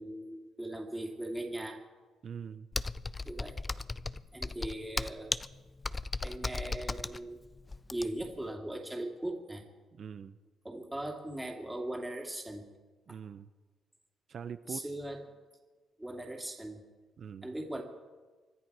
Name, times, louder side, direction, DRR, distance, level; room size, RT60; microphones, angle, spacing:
voice 1, 0.0-1.8 3.2-3.5 4.3-5.3 6.2-7.4 7.9-9.6 10.6-12.7 14.7-15.4 16.0-16.9 17.4-17.8, right 1 dB, 10° right, 1 dB, 2.5 m, -39 dB
voice 2, 2.2-2.7 10.0-10.4 13.1-13.5 14.3-14.8 17.2-17.5, right 7 dB, 55° right, 12 dB, 0.6 m, -43 dB
Computer keyboard, 2.7-8.3, left 3 dB, 25° left, 0.5 m, -36 dB
25.0 x 10.5 x 4.8 m, 1.3 s
cardioid pair, 90°, 0 cm